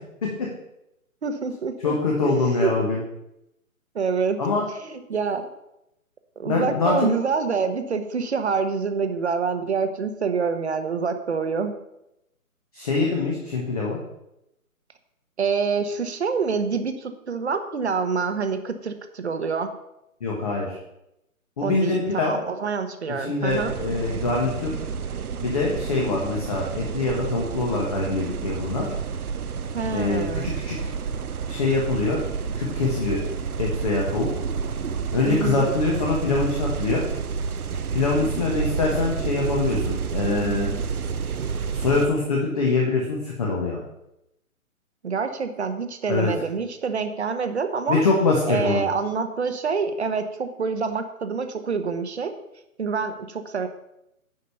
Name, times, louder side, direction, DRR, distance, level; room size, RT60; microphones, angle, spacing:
voice 1, 1.2-2.0 2.6-2.8 3.9-4.4 4.7-5.5 6.4-11.8 15.4-19.7 21.6-23.7 29.7-30.5 35.3-35.7 40.3-40.8 45.0-48.0 48.5-52.3 52.8-53.7, right 5 dB, 50° right, 8 dB, 1.2 m, -26 dB
voice 2, 1.8-3.0 4.4-4.6 6.4-7.0 12.7-14.0 20.2-20.8 21.6-22.4 23.2-24.7 25.4-28.9 29.9-30.9 31.5-32.2 32.5-33.2 33.6-34.3 35.1-37.0 37.9-40.7 41.7-43.8 46.1-46.3 47.9-48.8, left 3 dB, 25° left, -2 dB, 1.4 m, -24 dB
sound 1, 23.5-42.1, right 6 dB, 85° right, 0.9 m, -30 dB
9.6 x 5.2 x 6.9 m, 0.86 s
hypercardioid pair, 165°, 43 cm